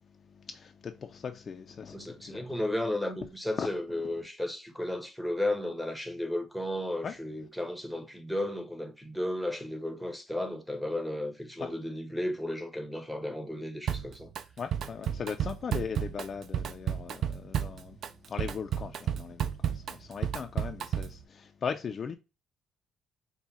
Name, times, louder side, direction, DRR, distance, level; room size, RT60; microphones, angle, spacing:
voice 1, 0.2-2.6 3.6-3.7 7.0-7.1 11.6-11.7 14.6-18.0 18.3-22.2, left 6 dB, 40° left, 0.3 m, -38 dB
voice 2, 1.9-14.3, left 1 dB, ahead, 0.7 m, -34 dB
Drum kit, 13.9-14.4 14.7-21.2, right 9 dB, 55° right, 0.3 m, -32 dB
5.3 x 2.1 x 3.0 m
cardioid pair, 135°, 0 cm